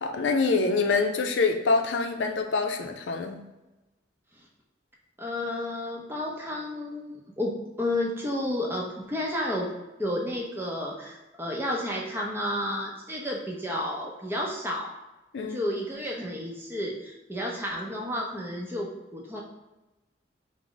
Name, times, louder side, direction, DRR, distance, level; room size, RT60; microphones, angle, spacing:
voice 1, 0.0-3.4 15.3-15.6, left 4 dB, 80° left, 4 dB, 0.5 m, -25 dB
voice 2, 5.2-9.7 10.0-14.9 15.4-19.4, left 1 dB, 10° right, -1 dB, 0.6 m, -31 dB
4.7 x 2.1 x 3.8 m, 1.1 s
head